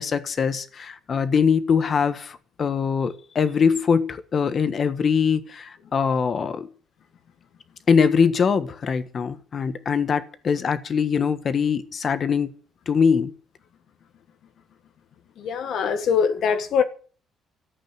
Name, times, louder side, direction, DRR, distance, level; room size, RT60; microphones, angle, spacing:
voice 1, 0.0-6.7 7.9-12.5 12.9-13.3, left 6 dB, 35° left, 1.4 m, -22 dB
voice 2, 15.4-16.8, left 6 dB, 55° left, 1.5 m, -22 dB
13.5 x 8.6 x 9.1 m
cardioid pair, 155°, 0 cm